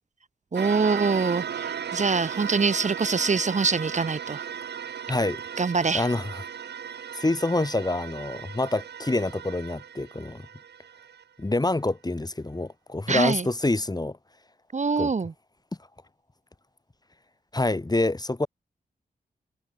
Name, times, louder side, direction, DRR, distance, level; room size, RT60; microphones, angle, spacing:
voice 1, 0.5-4.4 5.6-6.1 13.1-13.5 14.7-15.3, right 4 dB, 45° right, 1.2 m, -24 dB
sound 1, 0.6-11.2, right 8 dB, 85° right, 1.1 m, -36 dB
voice 2, 5.1-5.4 5.9-6.4 7.1-10.5 11.4-14.2 15.0-15.1 17.5-18.5, left 2 dB, 25° left, 2.9 m, -26 dB
cardioid pair, 60°, 17 cm